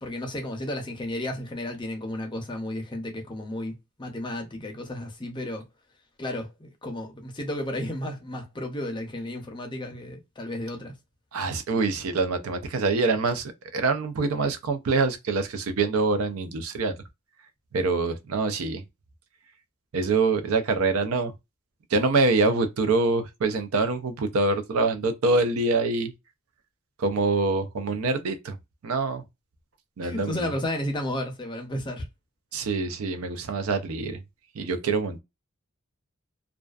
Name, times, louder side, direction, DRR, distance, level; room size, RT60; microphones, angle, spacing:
voice 1, 0.0-5.6 6.2-10.9 30.0-32.1, left 1 dB, 20° left, 0.5 m, -33 dB
voice 2, 11.3-16.9 17.7-18.8 19.9-21.3 21.9-26.1 27.0-28.6 28.8-29.2 30.0-30.5 32.5-34.2 34.6-35.2, right 3 dB, 75° right, 0.4 m, -25 dB
2.4 x 2.2 x 2.3 m
head